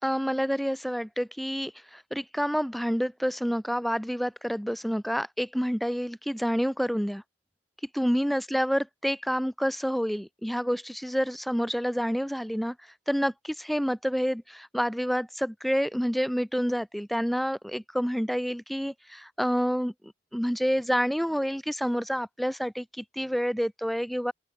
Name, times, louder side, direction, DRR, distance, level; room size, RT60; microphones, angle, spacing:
voice 1, 0.0-7.2 7.9-12.8 13.1-24.3, equal, ahead, 4.3 m, -28 dB
open air
head